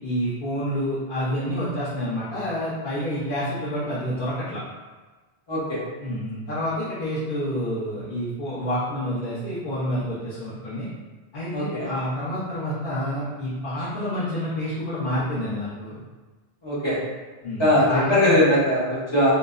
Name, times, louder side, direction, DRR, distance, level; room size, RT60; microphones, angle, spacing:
voice 1, 0.0-4.6 6.0-10.9 11.3-16.0 17.4-18.5, equal, 50° left, -13 dB, 0.9 m, -28 dB
voice 2, 5.5-5.8 11.5-11.9 16.6-17.0 17.6-19.3, left 1 dB, 30° left, -9 dB, 0.7 m, -20 dB
2.9 x 2.1 x 2.4 m, 1.3 s
omnidirectional pair, 1.2 m